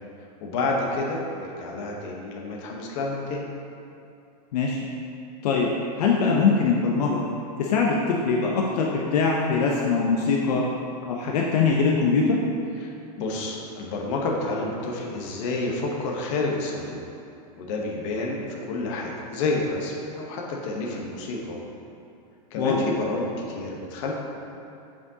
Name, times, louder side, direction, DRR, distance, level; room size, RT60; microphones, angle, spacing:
voice 1, 0.4-3.4 12.8-17.0 17.5-21.6 22.5-24.1, left 2 dB, 45° left, -1 dB, 1.0 m, -29 dB
voice 2, 6.0-7.2 7.6-10.6 11.1-12.4 22.6-22.8, left 4 dB, 70° left, -2 dB, 0.7 m, -22 dB
8.1 x 5.0 x 2.8 m, 2.7 s
supercardioid pair, 155°, 21 cm